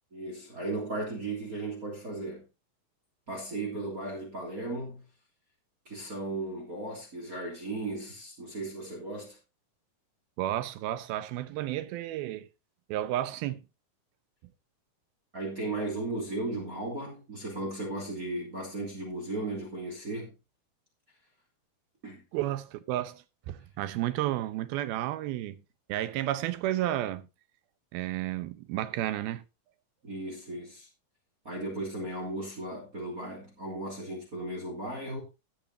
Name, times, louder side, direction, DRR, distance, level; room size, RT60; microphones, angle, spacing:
voice 1, 0.1-2.4 3.3-5.0 5.8-9.4 15.3-20.3 22.0-22.2 30.0-30.9 31.4-35.2, right 2 dB, 25° right, 3.3 m, -36 dB
voice 2, 10.4-12.5 12.9-13.6 22.3-25.6 25.9-27.3 27.9-29.4, right 13 dB, 90° right, 2.7 m, -32 dB
18.0 x 6.6 x 2.8 m
omnidirectional pair, 4.2 m